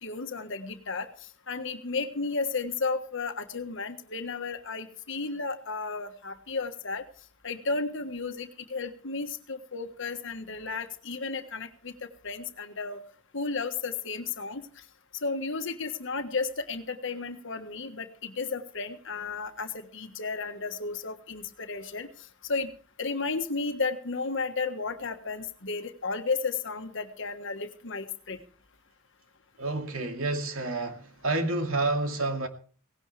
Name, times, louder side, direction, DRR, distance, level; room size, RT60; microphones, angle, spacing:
voice 1, 0.0-7.0 7.4-13.0 13.3-14.7 15.2-22.7 23.0-28.4, left 4 dB, 60° left, 1.5 m, -33 dB
voice 2, 29.6-32.5, right 2 dB, 80° right, 2.4 m, -29 dB
18.0 x 16.0 x 3.4 m
head